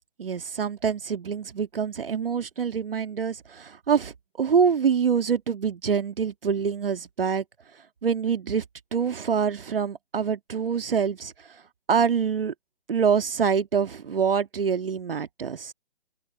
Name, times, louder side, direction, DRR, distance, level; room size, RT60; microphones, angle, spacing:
voice 1, 0.2-7.4 8.0-8.6 8.9-11.6 11.9-12.5 12.9-15.7, right 6 dB, 70° right, 1.7 m, -25 dB
open air
figure-of-eight pair, 135°, 29 cm